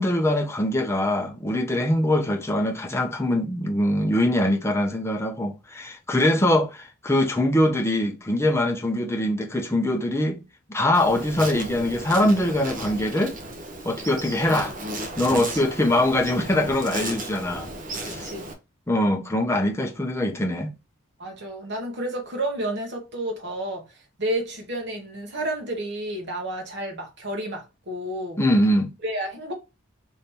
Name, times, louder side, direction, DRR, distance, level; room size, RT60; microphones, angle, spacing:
voice 1, 0.0-10.4 10.7-13.4 13.8-14.7 15.2-17.7 18.0-18.3 18.9-20.7 28.4-28.9, left 1 dB, 15° left, 0.6 m, -23 dB
Insect, 10.9-18.5, right 1 dB, 40° right, 0.8 m, -35 dB
voice 2, 18.1-18.5 21.2-23.9 24.2-28.4 29.0-29.5, right 1 dB, 55° right, 1.3 m, -31 dB
3.9 x 2.8 x 3.6 m
head